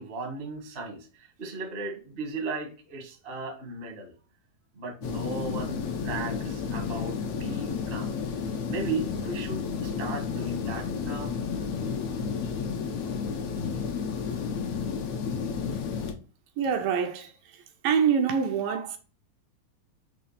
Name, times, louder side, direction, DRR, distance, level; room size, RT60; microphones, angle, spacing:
voice 1, 0.0-4.1 4.8-8.1 8.7-11.4 12.2-12.3 13.6-13.7, right 3 dB, 35° right, 0.9 m, -36 dB
sound 1, 5.0-16.1, left 6 dB, 75° left, 1.6 m, -32 dB
voice 2, 16.6-17.3 17.8-19.0, right 7 dB, 75° right, 2.3 m, -25 dB
6.4 x 3.4 x 5.7 m
omnidirectional pair, 4.3 m